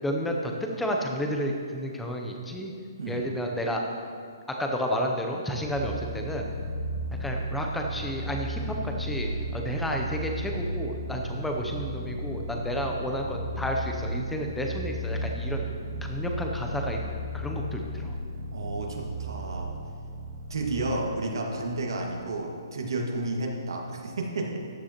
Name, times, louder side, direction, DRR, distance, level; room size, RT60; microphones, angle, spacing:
voice 1, 0.0-2.7 3.1-3.8 4.6-6.5 7.2-15.6 16.0-18.2, equal, ahead, 1 dB, 0.5 m, -31 dB
sound 1, 5.6-22.3, right 1 dB, 30° right, 0.9 m, -34 dB
voice 2, 18.5-19.7 20.5-24.6, right 2 dB, 70° right, 0 dB, 1.8 m, -31 dB
14.5 x 10.0 x 2.9 m, 2.2 s
hypercardioid pair, 180°, 2 cm